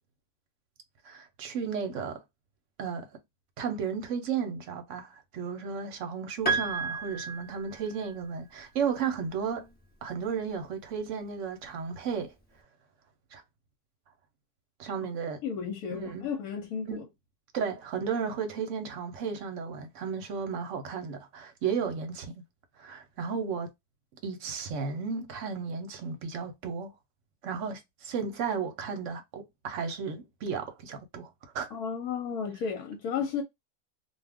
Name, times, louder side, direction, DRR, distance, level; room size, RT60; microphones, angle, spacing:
voice 1, 1.0-2.2 2.8-3.1 3.6-9.7 10.0-12.3 13.3-13.4 14.8-15.4 15.9-16.3 16.9-17.0 17.5-22.4 22.8-23.7 24.2-26.9 27.4-31.7, right 6 dB, 60° right, 0.9 m, -34 dB
Piano, 6.5-8.1, right 4 dB, 10° left, 0.7 m, -32 dB
voice 2, 15.4-17.1 31.7-33.4, left 7 dB, 80° left, 1.2 m, -33 dB
2.5 x 2.3 x 3.4 m
omnidirectional pair, 1.6 m